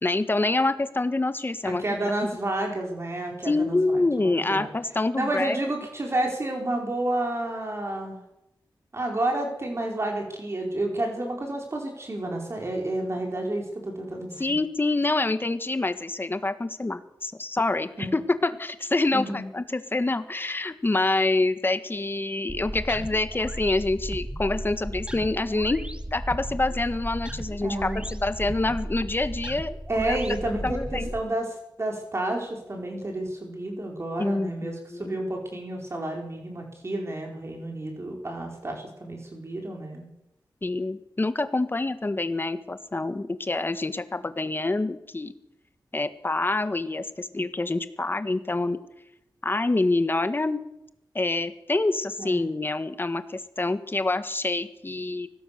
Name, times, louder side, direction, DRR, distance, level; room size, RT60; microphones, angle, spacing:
voice 1, 0.0-1.8 3.4-5.6 14.4-25.8 26.1-29.7 30.1-30.2 30.6-31.1 34.2-35.2 40.6-45.3 45.9-48.8 49.4-50.6 51.1-55.3, left 2 dB, 25° left, 10 dB, 1.6 m, -26 dB
voice 2, 1.6-4.7 5.1-8.2 8.9-14.4 18.0-18.1 19.1-19.5 27.6-28.0 29.9-40.1 47.3-47.4 52.2-52.4, right 1 dB, 35° right, 1 dB, 4.8 m, -30 dB
sound 1, 22.5-31.2, right 1 dB, 15° right, 1.6 m, -35 dB
25.0 x 18.5 x 6.9 m, 0.85 s
wide cardioid pair, 135°, 8 cm